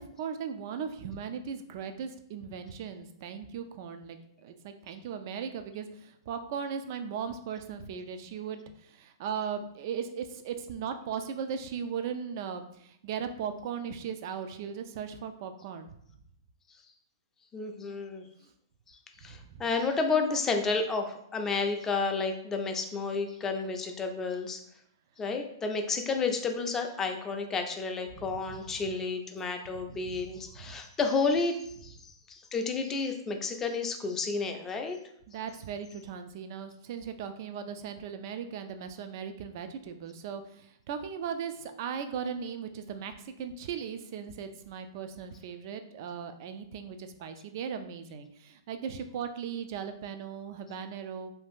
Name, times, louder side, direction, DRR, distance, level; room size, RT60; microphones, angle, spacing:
voice 1, 0.0-15.9 18.4-18.5 19.2-19.6 28.1-28.9 29.8-30.7 35.3-51.3, right 7 dB, 50° right, 8 dB, 0.4 m, -38 dB
voice 2, 17.5-18.3 18.9-24.6 25.2-35.0, left 4 dB, 15° left, 4 dB, 0.4 m, -31 dB
2.7 x 2.4 x 3.5 m, 0.72 s
hypercardioid pair, 125°, 2 cm